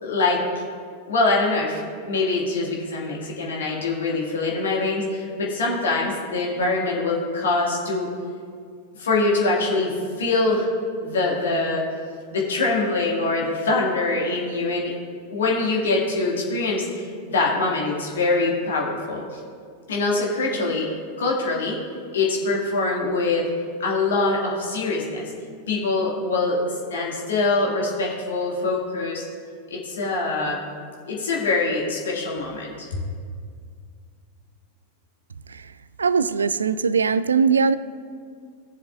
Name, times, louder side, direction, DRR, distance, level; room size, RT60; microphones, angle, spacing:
voice 1, 0.0-0.4 1.1-8.1 9.0-10.7 11.0-11.8 12.3-14.9 15.3-19.2 19.9-20.9 21.2-21.8 22.1-23.5 23.8-25.3 25.7-29.2 29.7-30.6 31.1-32.9, left 3 dB, 65° left, 2.1 m, -24 dB
voice 2, 36.0-37.7, right 5 dB, 75° right, 0.3 m, -20 dB
17.5 x 6.9 x 2.5 m
figure-of-eight pair, 90°, 0 cm